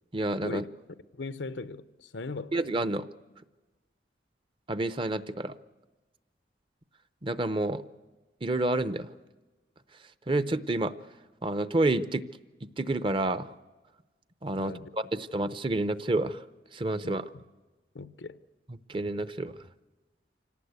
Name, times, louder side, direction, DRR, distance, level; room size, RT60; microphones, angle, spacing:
voice 1, 0.1-0.6 2.5-3.0 4.7-5.5 7.2-7.8 8.4-9.1 10.3-10.9 11.4-12.2 12.8-13.5 14.4-16.4 16.7-17.2 18.9-19.5, right 2 dB, 30° right, 0.7 m, -29 dB
voice 2, 1.1-2.6 14.6-14.9 17.0-17.4 17.9-18.4, left 3 dB, 90° left, 0.8 m, -39 dB
25.5 x 18.0 x 8.2 m
head